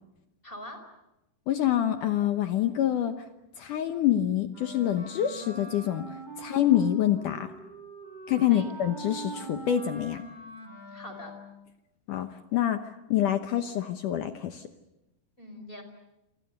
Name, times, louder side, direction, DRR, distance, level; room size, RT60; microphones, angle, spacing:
voice 1, 0.4-0.8 8.5-8.7 10.9-11.3 15.4-15.8, equal, 10° left, 7 dB, 4.3 m, -42 dB
voice 2, 1.5-3.1 3.6-7.5 8.3-10.2 12.1-14.7, left 11 dB, 75° left, 8 dB, 1.9 m, -26 dB
Wind instrument woodwind instrument, 4.5-11.7, right 2 dB, 10° right, 6.1 m, -43 dB
28.5 x 27.5 x 6.7 m, 0.93 s
omnidirectional pair, 5.1 m